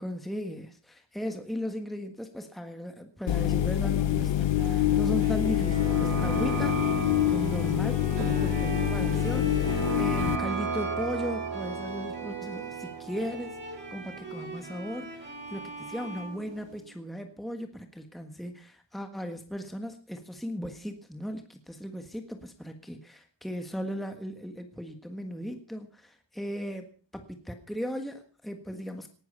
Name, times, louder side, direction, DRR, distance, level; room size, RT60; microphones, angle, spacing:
voice 1, 0.0-6.8 7.3-29.1, equal, ahead, 5 dB, 1.6 m, -37 dB
sound 1, 3.3-10.4, left 12 dB, 80° left, 1.1 m, -26 dB
sound 2, 4.6-16.3 16.5-16.6, right 6 dB, 85° right, 4.8 m, -36 dB
Bowed string instrument, 6.2-17.2, right 1 dB, 25° right, 6.5 m, -41 dB
18.5 x 12.5 x 5.4 m, 0.41 s
wide cardioid pair, 135°, 44 cm